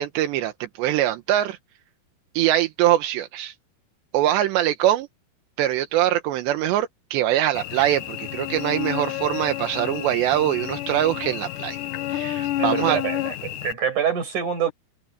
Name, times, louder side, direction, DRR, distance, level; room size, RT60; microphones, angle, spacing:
voice 1, 0.0-1.6 2.3-3.5 4.1-5.1 5.6-11.8 12.1-13.0, right 13 dB, 80° right, 3.3 m, -23 dB
Cricket / Buzz, 7.5-13.7, left 14 dB, 80° left, 1.9 m, -30 dB
voice 2, 12.6-14.7, right 8 dB, 45° right, 7.8 m, -26 dB
omnidirectional pair, 5.0 m